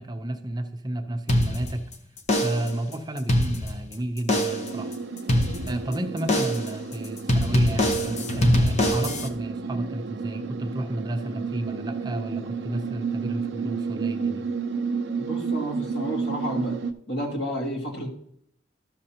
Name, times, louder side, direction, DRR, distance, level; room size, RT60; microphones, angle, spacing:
voice 1, 0.0-1.8 2.4-5.0 5.7-14.4, right 1 dB, 25° right, 5 dB, 0.7 m, -32 dB
sound 1, 1.3-1.9 2.3-2.8 3.2-3.9 4.3-4.8 5.3-5.9 6.3-6.8 7.3-9.3, equal, 40° left, 0.8 m, -23 dB
sound 2, 4.5-16.9, right 5 dB, 75° right, 0.5 m, -31 dB
voice 2, 15.2-16.8 17.1-18.1, equal, 70° left, -2 dB, 2.3 m, -31 dB
13.0 x 6.6 x 2.9 m, 0.69 s
head